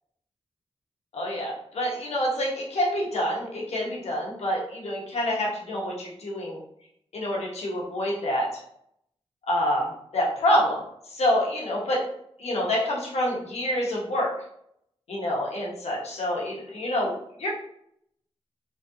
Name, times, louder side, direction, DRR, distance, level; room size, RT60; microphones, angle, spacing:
voice 1, 1.1-6.6 7.1-8.5 9.5-10.8 11.1-12.0 12.4-14.3 15.1-17.5, left 1 dB, 80° left, -3 dB, 0.9 m, -27 dB
3.2 x 2.5 x 2.7 m, 0.72 s
cardioid pair, 50°, 11 cm